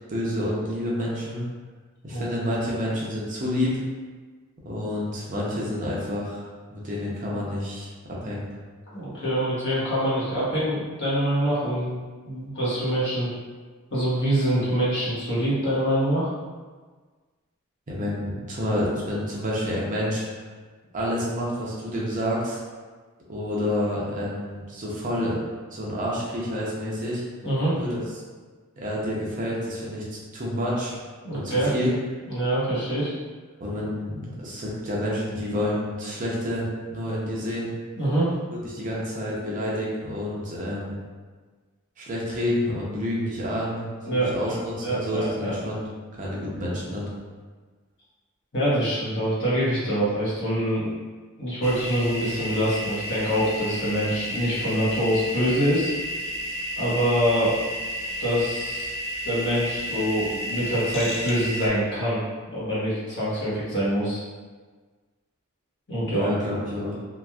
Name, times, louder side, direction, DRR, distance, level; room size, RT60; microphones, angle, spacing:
voice 1, 0.1-1.4 2.0-3.8 4.6-7.9 8.2-8.4 17.9-20.2 20.9-22.6 23.3-25.4 25.7-27.2 27.8-28.0 28.8-30.0 30.3-31.0 31.3-31.9 33.6-37.7 38.6-41.0 42.0-45.9 46.1-47.1 66.1-67.0, left 1 dB, 35° right, -5 dB, 0.6 m, -29 dB
voice 2, 8.9-12.0 12.2-13.3 13.9-16.3 27.4-27.7 31.2-31.7 32.3-33.1 38.0-38.3 44.0-45.5 48.5-50.9 51.4-55.9 56.8-57.6 58.2-58.9 59.2-62.2 62.5-64.2 65.9-66.3, equal, 55° left, -9 dB, 1.0 m, -25 dB
sound 1, 51.6-61.7, equal, 30° left, 0.4 m, -32 dB
3.0 x 2.4 x 2.3 m, 1.4 s
head